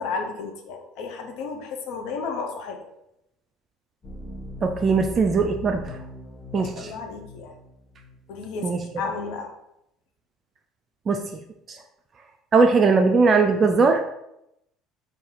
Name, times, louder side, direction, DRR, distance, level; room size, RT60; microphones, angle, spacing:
voice 1, 0.0-2.8 6.5-7.5 8.3-9.5, left 4 dB, 60° left, 3 dB, 0.6 m, -33 dB
sound 1, 4.0-8.4 8.7-8.9, equal, 30° left, 1.1 m, -40 dB
voice 2, 4.6-5.9 6.5-6.9 8.6-8.8 11.1-11.2 12.5-14.0, right 4 dB, 35° right, 5 dB, 0.3 m, -19 dB
4.1 x 2.6 x 3.7 m, 0.82 s
figure-of-eight pair, 60°, 0 cm